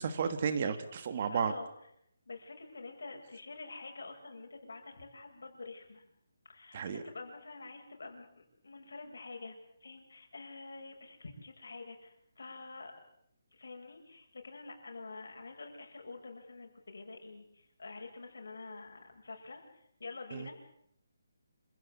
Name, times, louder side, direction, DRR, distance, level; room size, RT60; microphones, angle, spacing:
voice 1, 0.0-1.5 6.7-7.0 20.3-20.5, right 6 dB, 30° right, 10 dB, 1.5 m, -33 dB
voice 2, 1.3-1.7 2.3-6.0 6.5-12.9 13.5-19.6 20.0-20.5, left 3 dB, 75° left, 3 dB, 7.5 m, -47 dB
27.5 x 16.0 x 8.3 m, 0.73 s
hypercardioid pair, 180°, 0 cm